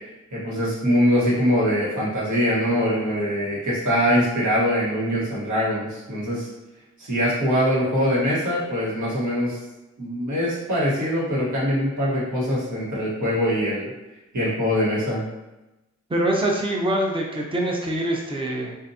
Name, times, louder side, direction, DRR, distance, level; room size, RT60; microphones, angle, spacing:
voice 1, 0.3-6.5 7.0-9.6 10.0-13.9 14.3-15.2, equal, 90° right, -7 dB, 1.3 m, -23 dB
voice 2, 16.1-18.8, right 1 dB, 20° right, -1 dB, 0.6 m, -24 dB
3.9 x 2.5 x 2.7 m, 1.0 s
cardioid pair, 65°, 30 cm